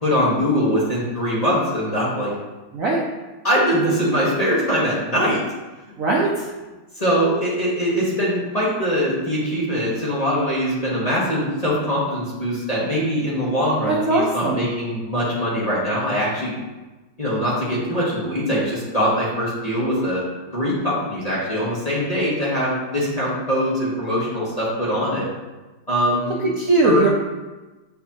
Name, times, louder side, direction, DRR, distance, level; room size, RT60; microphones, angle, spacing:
voice 1, 0.0-2.3 3.4-5.4 6.9-16.5 17.2-20.2 20.5-25.3 25.9-26.5 26.8-27.1, equal, 25° left, -7 dB, 1.2 m, -22 dB
voice 2, 6.0-6.5 13.9-14.6 26.4-27.1, right 3 dB, 60° right, -3 dB, 0.9 m, -19 dB
8.6 x 4.5 x 2.8 m, 1.2 s
omnidirectional pair, 2.1 m